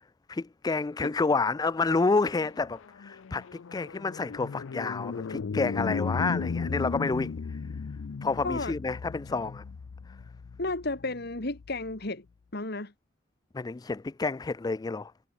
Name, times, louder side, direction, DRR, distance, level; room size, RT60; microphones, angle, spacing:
voice 1, 0.3-7.6 8.2-9.6 13.5-15.1, left 3 dB, 20° left, 0.3 m, -29 dB
sound 1, 2.4-11.9, left 5 dB, 85° left, 0.5 m, -36 dB
voice 2, 8.4-8.7 10.6-12.2 12.5-12.9, left 2 dB, 55° left, 2.8 m, -32 dB
head